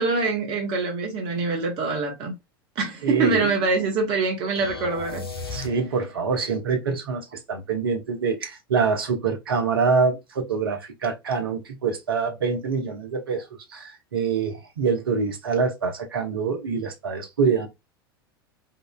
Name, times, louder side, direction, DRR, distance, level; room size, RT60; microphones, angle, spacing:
voice 1, 0.0-2.3 2.8-5.2, right 3 dB, 40° right, 1.1 m, -24 dB
voice 2, 3.0-3.5 5.5-17.7, right 5 dB, 70° right, 0.8 m, -25 dB
sound 1, 4.6-6.3, left 4 dB, 80° left, 0.8 m, -35 dB
3.8 x 2.5 x 2.3 m
figure-of-eight pair, 85°, 12 cm